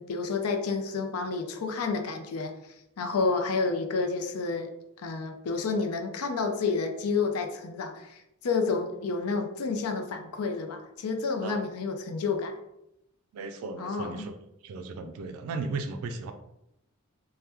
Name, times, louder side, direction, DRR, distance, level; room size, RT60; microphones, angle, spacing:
voice 1, 0.0-2.5 3.0-4.7 5.0-12.5 13.8-14.3, left 4 dB, 80° left, 6 dB, 0.4 m, -30 dB
voice 2, 13.3-14.4 14.6-16.3, right 3 dB, 75° right, 7 dB, 0.3 m, -36 dB
2.9 x 2.1 x 3.3 m, 0.82 s
head